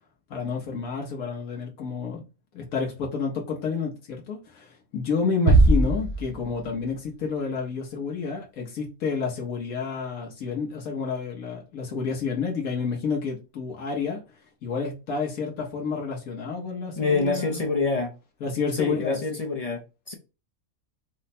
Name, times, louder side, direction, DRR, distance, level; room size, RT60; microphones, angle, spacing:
voice 1, 0.3-2.2 2.5-14.2 14.6-17.6 18.4-19.2, left 5 dB, 80° left, 1.4 m, -29 dB
sound 1, 5.5-7.0, right 2 dB, 50° right, 1.1 m, -20 dB
voice 2, 17.0-18.1 18.7-20.1, left 4 dB, 55° left, 0.4 m, -26 dB
4.7 x 2.1 x 4.1 m
omnidirectional pair, 1.5 m